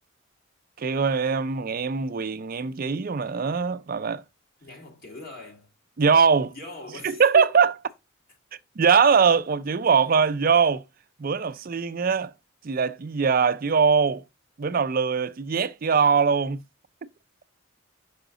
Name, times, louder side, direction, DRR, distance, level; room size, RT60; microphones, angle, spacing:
voice 1, 0.8-4.2 6.0-6.5 7.0-7.7 8.8-10.8 11.2-12.3 12.6-14.2 14.6-16.6, right 6 dB, 40° right, 0.4 m, -22 dB
voice 2, 4.6-5.7 6.5-7.6 11.5-11.6, left 1 dB, 45° left, 2.1 m, -41 dB
5.7 x 4.9 x 3.7 m
head